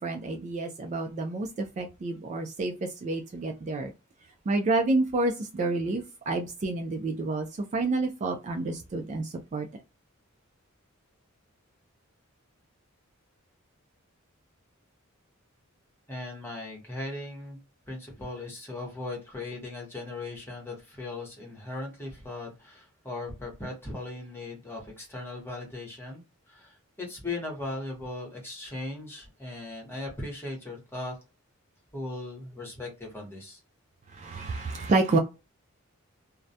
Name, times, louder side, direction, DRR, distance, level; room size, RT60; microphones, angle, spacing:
voice 1, 0.0-3.9 4.5-7.5 7.7-9.8 34.1-35.2, right 2 dB, 35° right, 0.3 m, -29 dB
voice 2, 16.1-17.6 17.9-26.2 26.5-31.2 31.9-33.6, left 2 dB, 10° left, 0.9 m, -38 dB
2.3 x 2.1 x 2.6 m
head